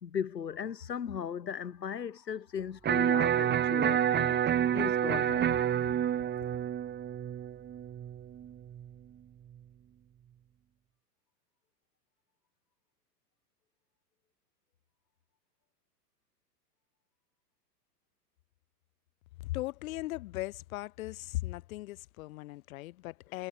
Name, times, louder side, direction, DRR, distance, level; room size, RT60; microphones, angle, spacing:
voice 1, 0.0-5.8 6.4-6.5, left 8 dB, 85° left, 2.5 m, -37 dB
Electric guitar, 2.8-8.9, right 10 dB, 20° right, 2.5 m, -29 dB
voice 2, 19.4-23.5, left 18 dB, 55° left, 4.0 m, -38 dB
hypercardioid pair, 115°, 49 cm